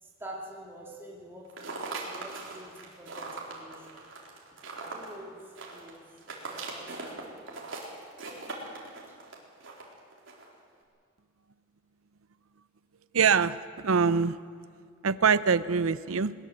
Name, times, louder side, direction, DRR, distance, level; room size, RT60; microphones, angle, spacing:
voice 1, 0.0-1.5 1.8-2.7 3.0-4.0 4.8-5.3 5.7-6.0 6.5-7.5 9.1-9.2, right 1 dB, 10° right, -3 dB, 2.6 m, -46 dB
sound 1, 1.4-10.5, right 3 dB, 65° right, 3.9 m, -40 dB
voice 2, 13.1-14.4 15.0-16.3, right 6 dB, 90° right, 15 dB, 0.6 m, -24 dB
20.0 x 20.0 x 7.8 m, 2.1 s
head